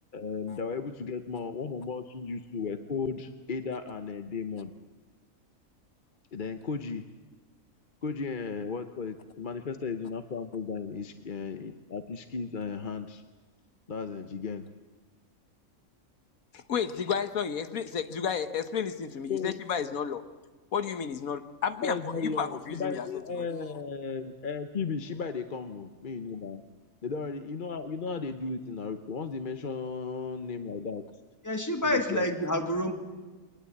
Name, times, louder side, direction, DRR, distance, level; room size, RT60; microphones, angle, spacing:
voice 1, 0.1-4.7 6.3-7.1 8.0-13.2 13.9-14.7 19.3-19.5 21.8-26.6 27.0-31.1 31.8-32.3, left 5 dB, 40° left, 9 dB, 1.0 m, -35 dB
voice 2, 16.5-20.2 20.7-23.1 23.4-23.5, left 7 dB, 85° left, 10 dB, 1.6 m, -32 dB
voice 3, 31.4-32.9, left 1 dB, 15° left, 5 dB, 2.2 m, -28 dB
24.0 x 19.5 x 8.6 m, 1.3 s
omnidirectional pair, 1.4 m